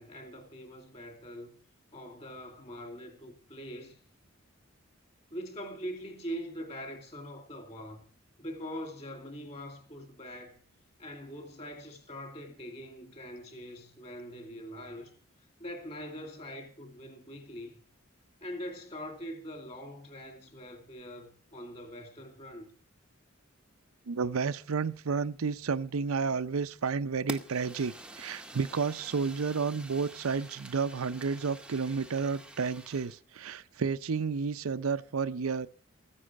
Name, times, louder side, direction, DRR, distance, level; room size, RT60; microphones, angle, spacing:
voice 1, 0.0-1.5 1.9-4.0 5.3-8.0 8.4-10.6 11.0-15.1 15.6-17.8 18.4-22.7, equal, 30° left, 2.6 m, -43 dB
voice 2, 24.1-35.7, right 5 dB, 85° right, 0.6 m, -31 dB
Fire, 27.3-33.2, right 1 dB, 5° right, 0.7 m, -46 dB
14.5 x 9.9 x 6.3 m
head